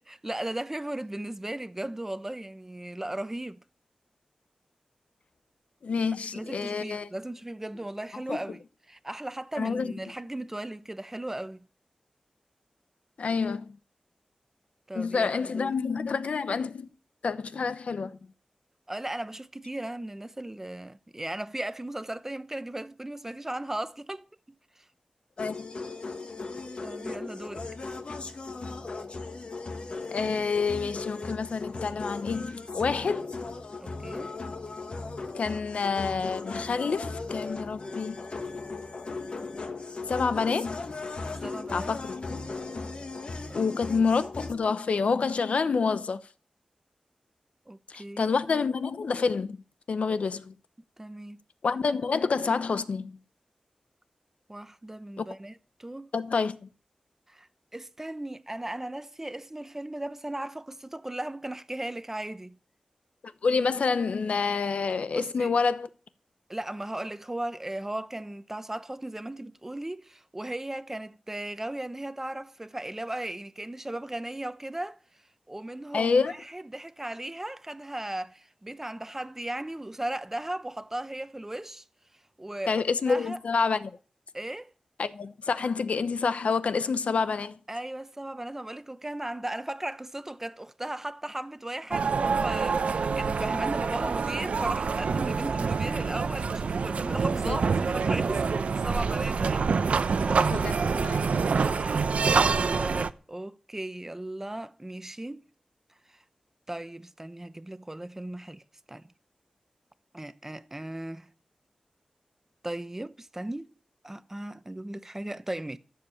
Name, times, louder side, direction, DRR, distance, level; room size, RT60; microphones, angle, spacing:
voice 1, 0.0-3.6 6.3-11.7 14.9-15.7 18.9-24.2 24.8-24.9 26.8-27.7 33.8-34.3 41.3-42.0 43.5-43.6 47.7-48.3 51.0-51.4 54.5-56.1 57.3-62.6 65.1-65.5 66.5-75.0 75.5-81.8 82.4-83.4 84.3-84.7 87.7-100.3 101.8-105.5 106.1-106.2 106.7-108.6 108.9-109.1 110.1-111.3 112.6-113.7 114.0-115.8, right 1 dB, 15° right, 0.9 m, -37 dB
voice 2, 5.8-7.1 8.3-8.4 9.6-9.9 13.2-13.7 14.9-16.9 17.2-18.2 25.4-25.7 30.1-33.3 35.3-38.3 40.1-40.9 41.7-42.5 43.5-46.2 47.9-49.6 49.9-50.5 51.6-53.2 55.2-55.3 56.1-56.7 63.4-65.9 75.9-76.3 82.7-83.9 85.0-87.6 97.4-97.6 100.5-101.3, left 5 dB, 80° left, 0.8 m, -28 dB
sound 1, 25.4-44.5, left 3 dB, 60° left, 1.7 m, -37 dB
sound 2, 91.9-103.1, right 5 dB, 85° right, 0.7 m, -26 dB
13.5 x 7.4 x 8.4 m
wide cardioid pair, 85°, 2 cm